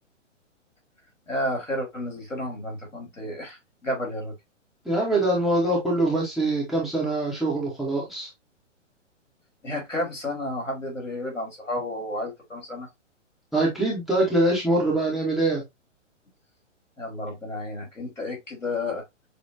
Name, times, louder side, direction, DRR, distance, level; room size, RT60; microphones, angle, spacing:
voice 1, 1.3-4.3 9.6-12.9 17.0-19.0, left 1 dB, 80° left, 2.8 m, -31 dB
voice 2, 4.8-8.3 13.5-15.6, right 2 dB, ahead, 0.8 m, -24 dB
6.6 x 2.3 x 2.8 m
figure-of-eight pair, 120°, 38 cm